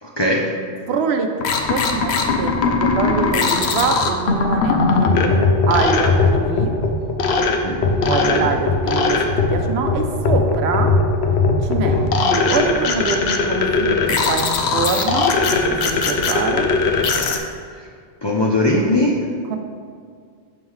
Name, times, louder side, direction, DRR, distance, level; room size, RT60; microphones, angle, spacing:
voice 1, 0.0-0.4 7.6-8.5 11.9-12.1 17.7-17.9 18.2-19.2, left 1 dB, 40° left, -2 dB, 0.4 m, -21 dB
voice 2, 0.9-5.3 5.7-6.7 8.0-9.2 9.5-10.9 11.6-16.7 19.5-19.6, right 4 dB, 80° right, 5 dB, 0.8 m, -24 dB
sound 1, 1.4-17.4, left 4 dB, 75° left, 0.8 m, -19 dB
6.9 x 5.4 x 3.1 m, 2.1 s
omnidirectional pair, 1.1 m